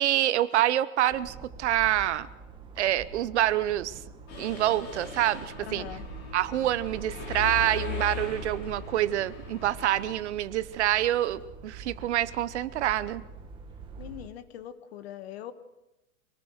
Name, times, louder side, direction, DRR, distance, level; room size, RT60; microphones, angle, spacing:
voice 1, 0.0-2.3 2.8-4.0 4.4-5.9 6.3-13.2, right 13 dB, 50° right, 16 dB, 0.9 m, -26 dB
sound 1, 1.1-14.3, right 5 dB, 10° right, 1.1 m, -45 dB
Mechanisms, 4.3-10.2, left 6 dB, 30° left, 5.9 m, -39 dB
voice 2, 5.6-6.1 14.0-15.5, left 11 dB, 45° left, 11 dB, 1.5 m, -41 dB
25.5 x 19.0 x 6.5 m, 0.97 s
supercardioid pair, 170°, 43 cm